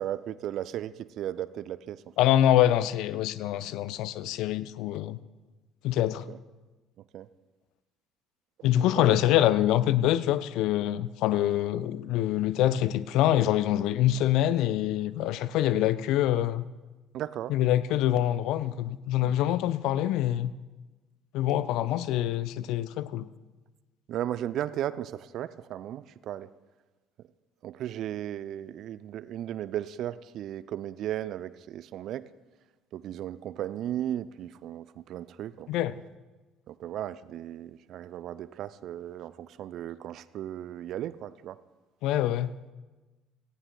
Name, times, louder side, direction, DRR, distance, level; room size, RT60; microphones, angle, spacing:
voice 1, 0.0-2.0 6.3-6.4 7.1-7.3 8.6-9.2 17.1-17.5 19.2-19.3 24.1-26.5 27.6-32.3 32.9-35.7 36.7-41.6, right 11 dB, 55° right, 0.4 m, -36 dB
voice 2, 2.2-5.2 5.8-6.2 8.6-16.7 17.5-20.5 21.3-23.3 35.7-35.9 42.0-42.5, left 12 dB, 60° left, 0.4 m, -25 dB
18.0 x 16.0 x 2.3 m
figure-of-eight pair, 55°, 0 cm